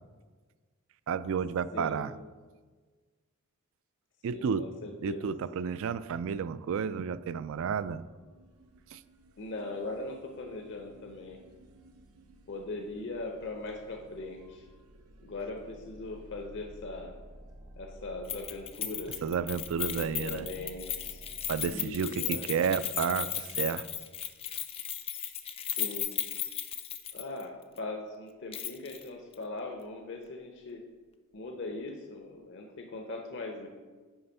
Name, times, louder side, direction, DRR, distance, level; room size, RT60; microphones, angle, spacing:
voice 1, 1.1-2.1 4.2-4.7 5.0-8.0 8.9-9.0 19.2-20.5 21.5-23.9, right 6 dB, 60° right, 15 dB, 0.3 m, -31 dB
voice 2, 4.3-5.3 9.4-11.4 12.5-14.7 15.2-17.1 17.8-19.2 20.0-21.2 21.6-22.5 25.6-26.1 27.1-30.8 31.3-33.7, left 2 dB, 55° left, 2 dB, 0.7 m, -40 dB
sound 1, 5.6-5.7 6.1-6.2 6.5-21.8, right 1 dB, 90° right, 0.8 m, -53 dB
Keys jangling, 18.3-27.4 27.8-27.9 28.5-29.0 29.3-29.4, left 10 dB, 25° left, 0.4 m, -36 dB
9.5 x 3.5 x 5.4 m, 1.4 s
head